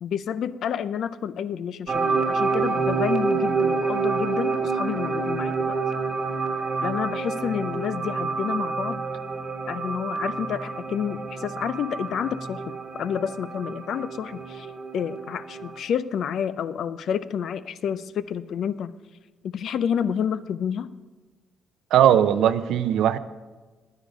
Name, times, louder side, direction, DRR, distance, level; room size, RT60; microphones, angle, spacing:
voice 1, 0.0-5.8 6.8-9.0 9.7-14.7 14.9-18.9 19.4-20.9, left 8 dB, 70° left, 0.4 m, -29 dB
sound 1, 1.9-15.8, right 4 dB, 45° right, 1.2 m, -28 dB
voice 2, 21.9-23.2, right 10 dB, 80° right, 0.5 m, -19 dB
10.5 x 9.9 x 5.1 m
cardioid pair, 80°, 0 cm